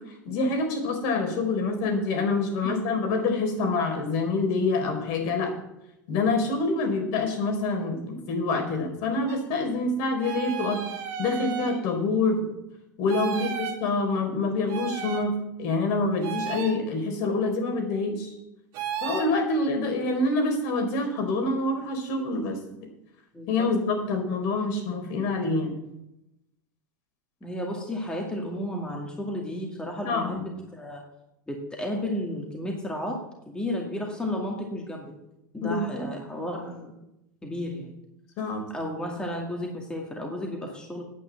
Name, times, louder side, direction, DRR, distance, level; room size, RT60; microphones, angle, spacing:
voice 1, 0.3-5.5 6.1-10.9 11.2-12.5 13.0-18.3 19.0-22.6 23.5-25.7 30.0-30.4 35.6-36.1 38.4-38.7, left 3 dB, 50° left, 3 dB, 4.0 m, -26 dB
sound 1, 9.3-9.4 10.2-11.8 13.1-13.8 14.7-15.3 16.2-16.8 18.7-19.3, right 8 dB, 40° right, 2.8 m, -33 dB
voice 2, 23.3-23.7 27.4-31.1 31.5-35.1 35.5-36.9 37.4-38.0 38.7-41.0, left 1 dB, 10° left, 1 dB, 2.2 m, -33 dB
9.3 x 9.1 x 7.6 m, 0.86 s
figure-of-eight pair, 85°, 10 cm